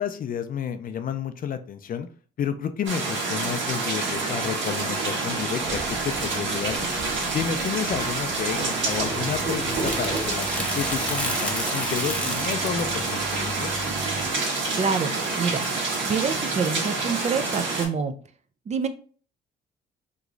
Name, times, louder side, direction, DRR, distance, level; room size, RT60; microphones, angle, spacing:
voice 1, 0.0-2.1 2.4-6.9 7.3-13.7, left 8 dB, 45° left, 9 dB, 0.4 m, -31 dB
sound 1, 2.9-17.9, right 3 dB, 70° right, 1.5 m, -28 dB
sound 2, 3.8-10.3, right 2 dB, 85° right, 0.9 m, -37 dB
sound 3, 8.8-14.3, left 1 dB, 5° left, 0.7 m, -33 dB
voice 2, 14.7-15.1 15.4-15.6 16.1-18.1 18.7-18.9, right 5 dB, 35° right, 9 dB, 0.4 m, -26 dB
3.0 x 2.3 x 3.7 m, 0.43 s
cardioid pair, 90°, 20 cm